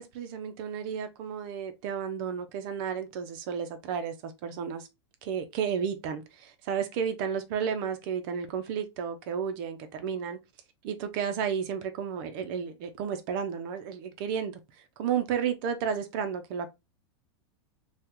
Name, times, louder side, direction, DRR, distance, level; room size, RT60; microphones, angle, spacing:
voice 1, 0.0-4.9 5.2-10.4 10.8-14.6 15.0-16.7, right 7 dB, 50° right, 0.7 m, -32 dB
2.9 x 2.4 x 3.6 m
supercardioid pair, 140°, 15 cm